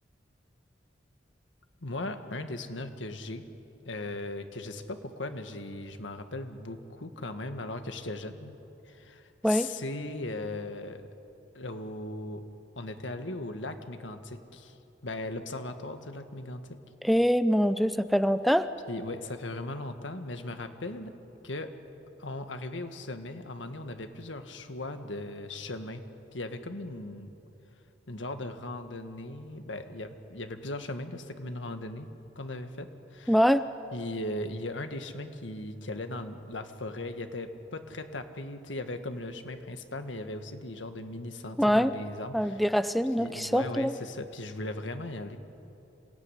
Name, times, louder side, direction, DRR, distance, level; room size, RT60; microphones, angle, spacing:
voice 1, 1.8-3.5 3.9-8.6 8.9-11.1 11.5-12.4 12.8-14.8 15.0-16.8 18.9-21.1 21.4-21.7 22.2-26.0 26.3-27.3 28.1-32.1 32.4-33.4 33.9-42.6 43.2-45.4, left 2 dB, 85° left, 7 dB, 1.7 m, -38 dB
voice 2, 17.0-18.7 33.3-33.6 41.6-41.9 42.3-43.9, equal, ahead, 12 dB, 0.5 m, -24 dB
27.0 x 17.5 x 10.0 m, 2.9 s
head